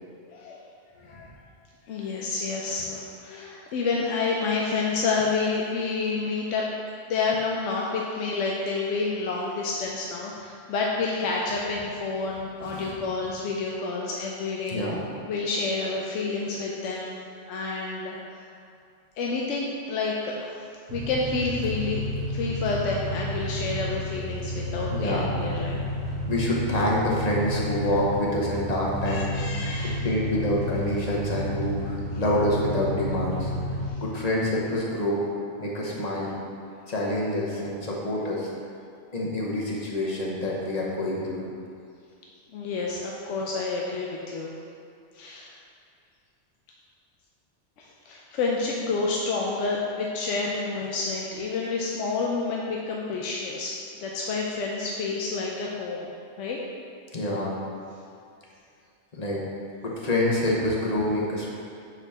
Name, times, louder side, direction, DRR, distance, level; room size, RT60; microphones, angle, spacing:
voice 1, 0.3-0.7 1.0-1.3 1.9-6.6 7.1-14.8 15.3-17.2 17.5-18.4 19.2-20.6 20.9-25.8 29.1-30.0 33.9-34.0 42.5-44.5 45.1-45.5 47.8-56.1 56.4-56.6, left 4 dB, 85° left, -2 dB, 0.9 m, -29 dB
voice 2, 12.6-13.0 14.7-15.0 24.9-25.3 26.3-29.4 29.8-33.5 34.0-35.2 35.6-36.4 36.9-38.5 39.1-41.5 57.1-57.5 59.1-59.4 59.8-61.5, left 1 dB, 35° left, -4 dB, 1.0 m, -27 dB
sound 1, 20.9-33.9, equal, 60° right, 1.0 m, -31 dB
6.9 x 4.7 x 3.5 m, 2.3 s
omnidirectional pair, 1.2 m